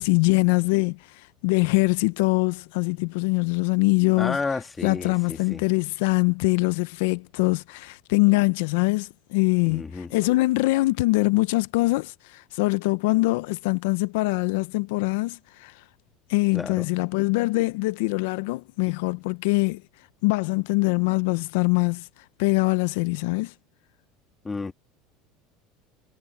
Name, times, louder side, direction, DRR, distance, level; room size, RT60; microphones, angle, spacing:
voice 1, 0.0-4.4 4.8-15.7 16.3-19.8 20.2-22.1 22.4-23.5, left 24 dB, 80° left, 0.6 m, -23 dB
voice 2, 4.2-5.6 9.7-10.1 16.5-16.8 24.4-24.7, left 4 dB, 15° left, 1.5 m, -31 dB
supercardioid pair, 145°, 0 cm